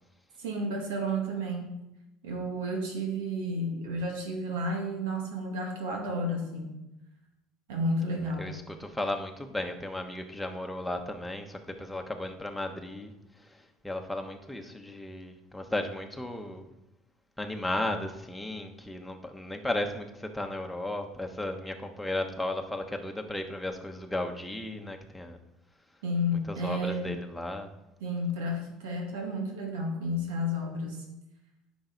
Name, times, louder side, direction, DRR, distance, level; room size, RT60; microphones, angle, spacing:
voice 1, 0.4-1.8 2.2-6.8 7.7-8.6 26.0-27.1 28.0-31.0, equal, 85° right, 1 dB, 2.1 m, -31 dB
voice 2, 8.4-13.1 13.4-16.7 17.4-25.4 26.5-27.7, left 1 dB, 5° left, 3 dB, 1.1 m, -35 dB
10.0 x 6.1 x 4.0 m, 0.90 s
supercardioid pair, 95°, 0 cm